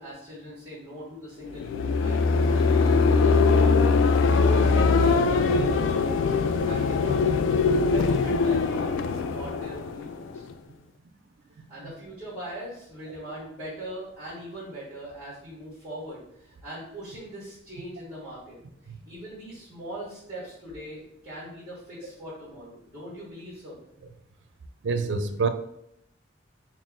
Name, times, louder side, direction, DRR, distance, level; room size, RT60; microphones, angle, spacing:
voice 1, 0.0-3.8 4.3-6.4 6.6-7.6 7.9-10.5 11.7-18.6 19.1-23.8, right 1 dB, 10° right, -12 dB, 1.3 m, -40 dB
sound 1, 1.5-10.5, left 4 dB, 85° left, 0.3 m, -22 dB
voice 2, 24.8-25.5, right 4 dB, 70° right, 9 dB, 0.4 m, -27 dB
4.1 x 2.0 x 3.6 m, 0.75 s
head